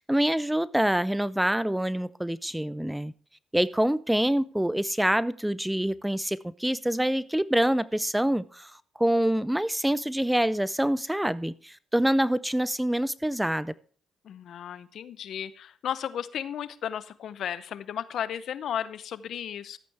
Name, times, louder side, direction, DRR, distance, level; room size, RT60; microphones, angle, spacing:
voice 1, 0.0-3.1 3.5-8.7 9.0-13.7, right 1 dB, 5° right, 0.4 m, -26 dB
voice 2, 14.2-19.8, left 9 dB, 70° left, 0.7 m, -34 dB
13.5 x 8.5 x 3.4 m
supercardioid pair, 60°, 0 cm